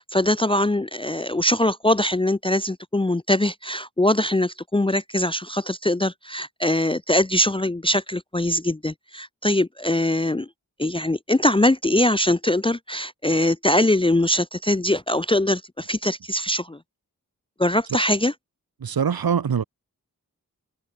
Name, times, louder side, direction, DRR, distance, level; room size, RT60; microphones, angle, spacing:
voice 1, 0.0-10.5 10.8-16.8 17.6-18.3, left 1 dB, 15° left, 0.6 m, -22 dB
voice 2, 18.8-19.6, right 7 dB, 80° right, 0.9 m, -23 dB
open air
wide cardioid pair, 40°, 35 cm